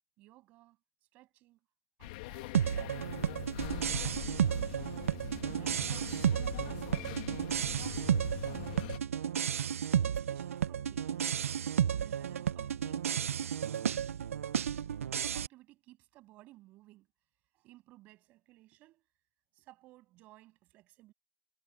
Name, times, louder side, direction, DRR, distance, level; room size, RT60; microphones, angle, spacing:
voice 1, 0.2-0.8 1.1-1.6 2.0-3.2 3.7-5.0 5.4-7.2 10.0-11.5 11.9-14.2 15.0-17.1 17.5-19.0 19.5-21.1, right 17 dB, 20° right, 7.8 m, -58 dB
sound 1, 2.0-9.0, left 18 dB, 25° left, 2.1 m, -43 dB
sound 2, 2.5-15.5, right 9 dB, 55° right, 0.9 m, -32 dB
hypercardioid pair, 170°, 9 cm